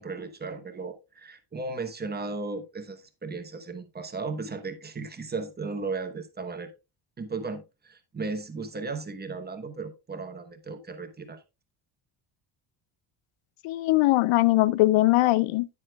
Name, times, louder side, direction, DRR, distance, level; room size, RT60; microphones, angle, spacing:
voice 1, 0.0-6.7 7.2-11.4, right 3 dB, 20° right, 0.9 m, -35 dB
voice 2, 13.6-15.7, left 18 dB, 75° left, 0.5 m, -21 dB
9.6 x 9.3 x 2.3 m
cardioid pair, 155°, 50 cm